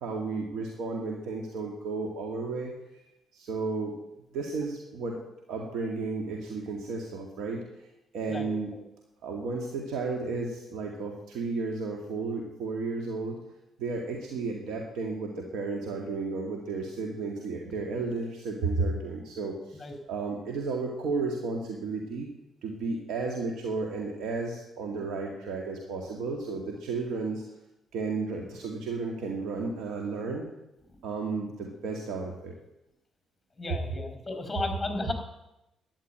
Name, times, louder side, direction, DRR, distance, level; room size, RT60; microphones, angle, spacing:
voice 1, 0.0-4.0 4.3-5.2 5.5-7.6 8.1-8.7 9.2-13.4 13.8-22.3 22.6-27.4 27.9-30.5 31.0-32.5, right 3 dB, 80° right, 1 dB, 2.3 m, -33 dB
voice 2, 33.6-35.1, left 2 dB, 15° left, 5 dB, 5.1 m, -33 dB
12.5 x 10.0 x 9.0 m, 0.90 s
cardioid pair, 90°, 0 cm